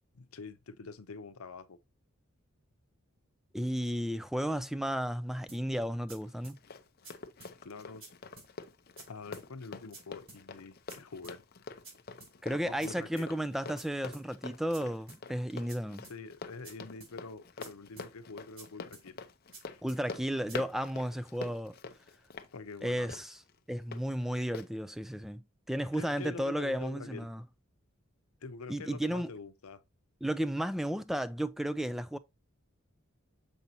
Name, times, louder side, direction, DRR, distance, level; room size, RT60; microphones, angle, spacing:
voice 1, 0.1-1.8 7.6-8.1 9.1-11.4 12.5-13.3 16.1-19.2 19.6-19.8 22.5-23.1 25.9-27.3 28.4-29.8, left 4 dB, 90° left, 0.7 m, -46 dB
voice 2, 3.5-6.6 12.4-16.1 19.8-21.8 22.8-23.4 23.7-27.4 28.7-29.3 30.2-32.2, equal, ahead, 0.3 m, -33 dB
sound 1, 5.5-5.6 6.1-6.2 6.4-6.6 7.0-7.1 7.4-7.5 8.0-8.1 8.4-8.5 9.0-9.1 9.3-9.5 9.9-10.0 10.3-10.4 10.9-11.0 11.2-11.4 11.8-11.9 12.2-12.3 12.8-12.9 13.2-13.3 13.8-13.9 14.1-14.3 14.7-14.8 15.1-15.2 15.7-15.8 16.0-16.2 16.6-16.7 17.0-17.1 17.6-17.7 18.0-18.1 18.6-18.7 18.9-19.1 19.5-19.6 19.9-20.0 20.5-20.6, right 3 dB, 45° right, 4.0 m, -51 dB
Run, 6.2-24.0 24.5-24.7, left 4 dB, 45° left, 0.6 m, -46 dB
6.9 x 5.4 x 2.8 m
head